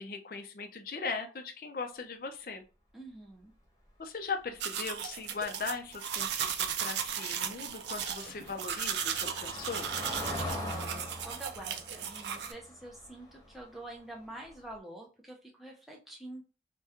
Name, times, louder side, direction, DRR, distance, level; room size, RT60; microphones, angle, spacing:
voice 1, 0.0-2.6 4.0-10.0, left 4 dB, 55° left, 5 dB, 0.5 m, -39 dB
voice 2, 2.9-3.5 10.6-16.4, right 1 dB, ahead, -2 dB, 0.5 m, -46 dB
sound 1, 4.6-12.5, right 8 dB, 80° right, 0.4 m, -36 dB
Car passing by / Engine, 6.9-13.9 14.2-14.5 14.8-14.9, left 1 dB, 20° left, 0.9 m, -42 dB
2.9 x 2.2 x 3.4 m, 0.34 s
head